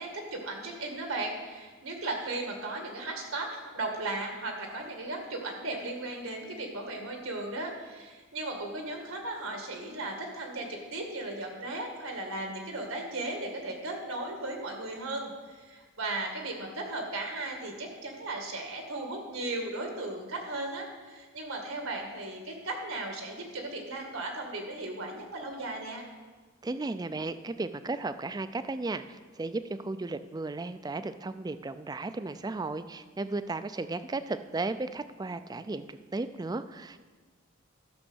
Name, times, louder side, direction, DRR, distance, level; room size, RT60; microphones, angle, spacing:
voice 1, 0.0-26.0, right 2 dB, 85° right, 2 dB, 2.0 m, -36 dB
voice 2, 26.6-37.0, right 3 dB, 20° right, 12 dB, 0.4 m, -35 dB
12.5 x 6.2 x 6.2 m, 1.4 s
head